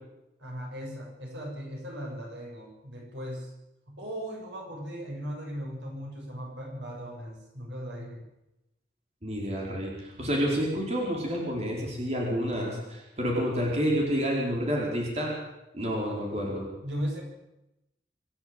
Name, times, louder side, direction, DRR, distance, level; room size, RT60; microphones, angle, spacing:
voice 1, 0.4-3.5 3.9-8.2 16.8-17.2, equal, 90° right, 0 dB, 7.0 m, -37 dB
voice 2, 9.2-15.3 15.7-16.7, equal, 40° right, -2 dB, 4.7 m, -29 dB
26.0 x 11.0 x 9.1 m, 0.93 s
head